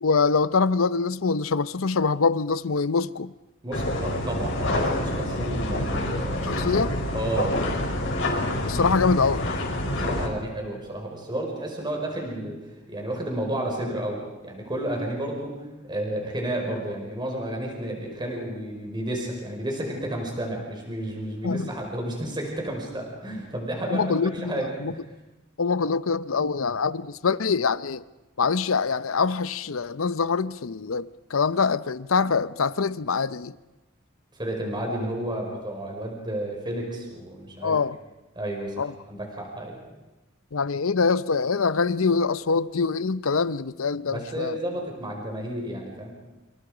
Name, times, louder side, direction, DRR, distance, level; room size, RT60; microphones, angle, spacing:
voice 1, 0.0-3.3 6.4-6.9 8.6-9.4 21.4-21.7 23.9-24.9 25.6-28.0 28.4-33.5 37.6-38.0 38.8-38.9 40.5-44.6, left 4 dB, 80° left, 0.7 m, -24 dB
voice 2, 3.6-6.7 7.1-7.6 9.8-15.6 15.9-25.0 34.3-37.8 38.4-39.8 44.1-46.1, right 1 dB, 20° right, 5.2 m, -31 dB
sound 1, 3.7-10.3, left 1 dB, 65° left, 5.9 m, -27 dB
28.0 x 27.5 x 5.1 m
head